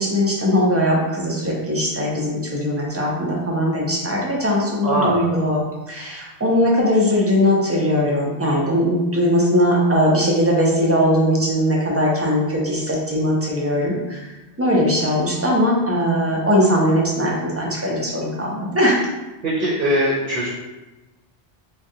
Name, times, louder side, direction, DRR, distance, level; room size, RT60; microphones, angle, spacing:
voice 1, 0.0-5.6 5.9-14.2 14.6-19.0, equal, 25° right, -3 dB, 0.3 m, -20 dB
voice 2, 4.8-5.3 19.4-20.5, right 1 dB, 60° right, -6 dB, 0.8 m, -21 dB
3.5 x 2.2 x 2.7 m, 1.1 s
omnidirectional pair, 1.1 m